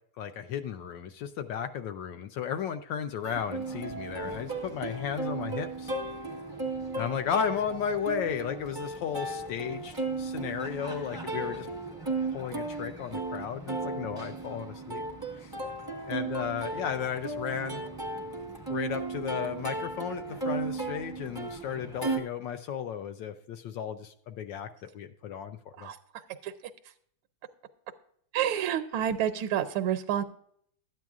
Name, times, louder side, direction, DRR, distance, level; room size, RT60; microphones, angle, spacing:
voice 1, 0.2-5.9 6.9-11.7 12.3-15.0 15.3-15.6 16.1-17.8 18.7-25.9, left 8 dB, 75° left, 9 dB, 1.1 m, -34 dB
Plucked string instrument, 3.2-22.2, right 3 dB, 20° right, 0.6 m, -35 dB
voice 2, 25.8-26.5 26.8-26.9 28.3-30.2, right 10 dB, 80° right, 7 dB, 1.5 m, -29 dB
13.0 x 9.1 x 2.4 m, 0.64 s
omnidirectional pair, 2.4 m